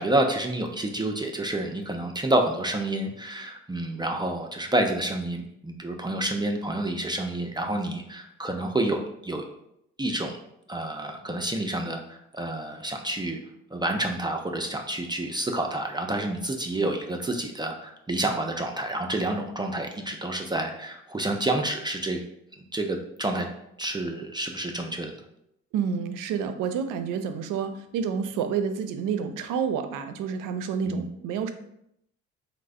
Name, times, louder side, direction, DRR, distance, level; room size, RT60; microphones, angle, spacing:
voice 1, 0.0-9.4 10.0-10.4 10.7-13.4 13.7-22.2 22.6-23.5 23.8-25.1 30.8-31.1, right 1 dB, 15° right, 3 dB, 0.4 m, -29 dB
voice 2, 25.7-31.5, right 7 dB, 75° right, 9 dB, 0.5 m, -29 dB
3.1 x 2.1 x 3.6 m, 0.77 s
supercardioid pair, 65°, 32 cm